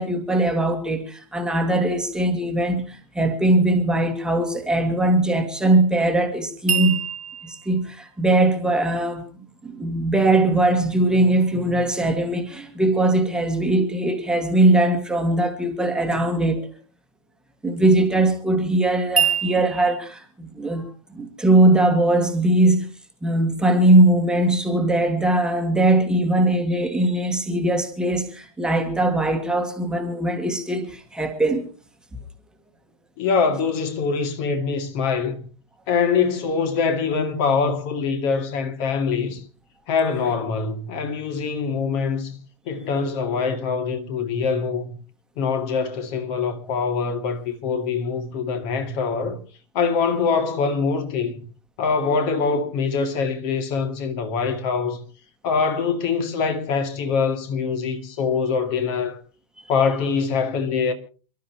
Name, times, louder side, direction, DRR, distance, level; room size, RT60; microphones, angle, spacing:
voice 1, 0.0-7.0 7.4-9.2 9.6-16.7 17.6-22.9 23.2-31.6, right 1 dB, 5° right, 1.8 m, -20 dB
sound 1, 6.7-9.8 19.2-20.0, right 8 dB, 85° right, 2.2 m, -26 dB
voice 2, 33.2-35.4 35.9-39.4 39.9-42.4 42.7-45.0 45.4-49.4 49.7-51.4 51.8-55.0 55.4-59.2 59.7-60.9, left 5 dB, 40° left, 2.3 m, -24 dB
28.5 x 12.0 x 3.0 m
figure-of-eight pair, 115°, 18 cm